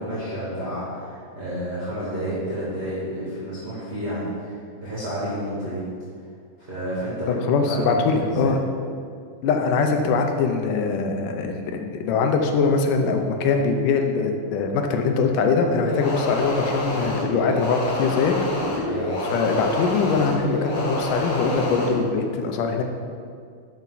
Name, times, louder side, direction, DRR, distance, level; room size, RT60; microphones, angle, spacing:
voice 1, 0.0-5.8 6.6-7.3 7.6-8.5 18.8-19.3, equal, 20° right, -10 dB, 2.4 m, -30 dB
voice 2, 7.5-8.6 9.4-18.3 19.3-22.8, left 4 dB, 80° left, 4 dB, 2.4 m, -22 dB
sound 1, 15.8-22.0, left 1 dB, 50° left, 1.5 m, -27 dB
12.0 x 5.6 x 4.0 m, 2.2 s
omnidirectional pair, 3.7 m